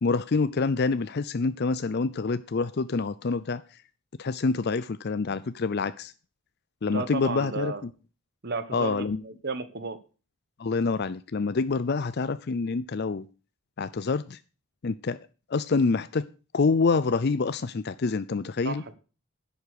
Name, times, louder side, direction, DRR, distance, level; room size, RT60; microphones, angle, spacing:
voice 1, 0.0-3.6 4.2-6.1 6.8-7.7 8.7-9.2 10.6-13.3 13.8-14.4 14.8-15.2 15.5-16.2 16.5-18.8, left 4 dB, 50° left, 15 dB, 0.5 m, -26 dB
voice 2, 6.9-7.8 8.4-10.0 18.6-18.9, right 3 dB, 50° right, 13 dB, 1.3 m, -33 dB
11.0 x 8.0 x 6.6 m, 0.35 s
head